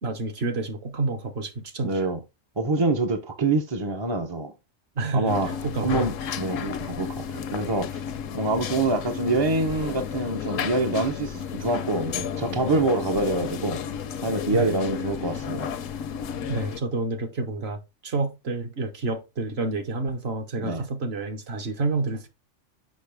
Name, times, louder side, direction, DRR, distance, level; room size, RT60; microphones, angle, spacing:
voice 1, 0.0-2.1 5.0-6.1 14.5-14.7 16.5-22.3, right 3 dB, 55° right, 1.2 m, -29 dB
voice 2, 1.8-2.2 2.6-4.5 5.1-5.5 5.8-7.9 8.3-13.8 14.2-15.7 20.6-20.8, right 2 dB, 30° right, 0.5 m, -26 dB
sound 1, 5.3-16.8, left 7 dB, 75° left, 1.0 m, -32 dB
6.4 x 5.3 x 3.3 m
omnidirectional pair, 1.4 m